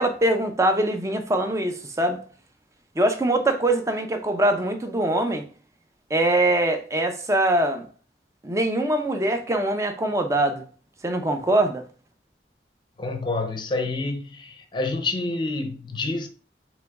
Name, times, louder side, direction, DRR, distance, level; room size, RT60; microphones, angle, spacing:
voice 1, 0.0-2.2 3.0-5.5 6.1-7.9 8.4-10.6 11.0-11.8, right 1 dB, 15° right, 0.6 m, -23 dB
voice 2, 13.0-16.3, left 3 dB, 25° left, 0.6 m, -28 dB
4.9 x 3.0 x 3.4 m
head